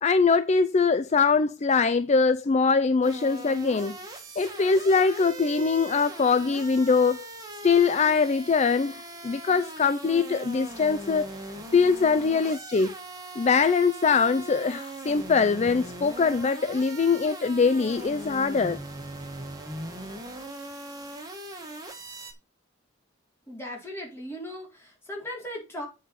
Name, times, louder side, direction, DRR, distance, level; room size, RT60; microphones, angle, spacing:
voice 1, 0.0-4.0 4.4-7.2 7.6-12.9 13.4-18.8, left 5 dB, 35° left, 0.4 m, -23 dB
sound 1, 3.0-22.3, right 1 dB, 20° right, 2.0 m, -40 dB
voice 2, 23.5-25.9, left 1 dB, 15° left, 3.7 m, -37 dB
8.0 x 5.4 x 5.8 m
head